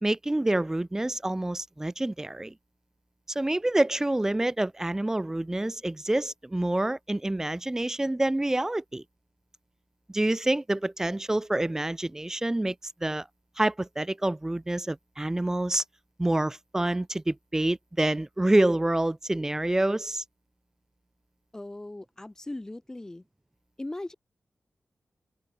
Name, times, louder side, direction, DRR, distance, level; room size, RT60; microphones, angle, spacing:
voice 1, 0.0-2.5 3.3-9.0 10.1-12.7 13.0-13.3 13.6-15.8 16.2-20.2, right 1 dB, 15° right, 1.4 m, -27 dB
voice 2, 21.5-23.2 23.8-24.1, left 2 dB, 15° left, 1.3 m, -38 dB
open air
wide cardioid pair, 120°, 4 cm